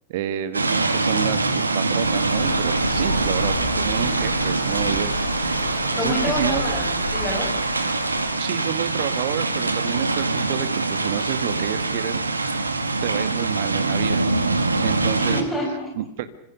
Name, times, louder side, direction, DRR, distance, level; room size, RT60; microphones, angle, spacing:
voice 1, 0.1-5.6 6.0-6.9 8.4-12.6 13.0-14.2 14.8-15.4 16.0-16.3, right 11 dB, 50° right, 11 dB, 1.8 m, -29 dB
sound 1, 0.5-15.4, right 3 dB, 80° right, 1.9 m, -24 dB
Water, 2.0-8.2, left 1 dB, 85° left, 5.4 m, -30 dB
sound 2, 2.8-9.2, left 7 dB, 50° left, 3.4 m, -45 dB
voice 2, 6.0-7.5 15.2-15.9, left 1 dB, 10° left, 2 dB, 5.1 m, -28 dB
26.5 x 26.0 x 6.6 m, 0.72 s
figure-of-eight pair, 90°, 0 cm